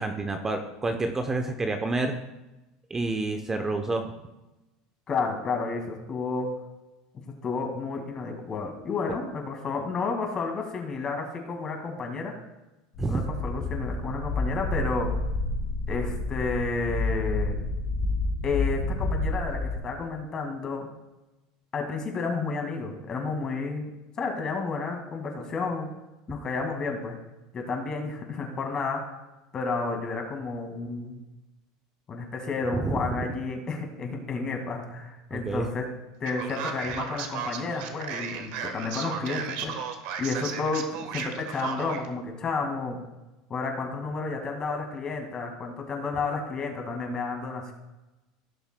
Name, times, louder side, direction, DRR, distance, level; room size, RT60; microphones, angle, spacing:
voice 1, 0.0-2.2 2.9-4.1 13.0-13.3 32.7-33.3 35.3-35.7, right 3 dB, 15° right, 5 dB, 0.7 m, -29 dB
voice 2, 5.1-6.5 7.3-12.4 13.1-15.2 15.9-17.6 18.4-20.9 21.7-23.9 24.2-25.9 26.3-27.2 27.5-29.1 29.5-31.2 32.1-35.9 36.2-39.7 40.2-43.0 43.5-47.7, left 4 dB, 30° left, 3 dB, 1.9 m, -31 dB
sound 1, 12.9-19.8, left 2 dB, 70° left, 3.5 m, -29 dB
Male speech man speaking, 36.2-42.1, right 7 dB, 65° right, 1.2 m, -35 dB
16.5 x 7.0 x 2.2 m, 1.0 s
supercardioid pair, 125°, 2 cm